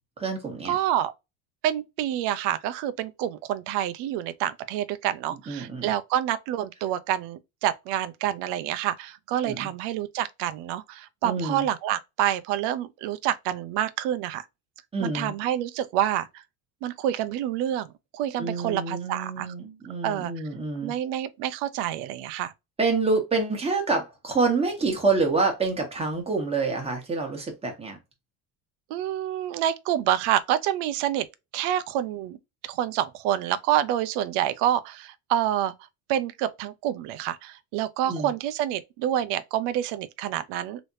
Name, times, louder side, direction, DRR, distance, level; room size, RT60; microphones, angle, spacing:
voice 1, 0.2-0.8 5.5-5.9 9.4-9.7 11.2-11.7 14.9-15.3 18.4-20.9 22.8-28.0 38.0-38.3, right 3 dB, 15° right, 1.2 m, -27 dB
voice 2, 0.7-1.1 1.6-14.4 15.0-16.4 16.8-19.5 20.0-20.3 20.8-22.5 28.9-31.3 31.5-32.4 32.6-35.7 36.1-40.8, right 11 dB, 70° right, 0.7 m, -27 dB
3.3 x 3.0 x 2.6 m
cardioid pair, 145°, 42 cm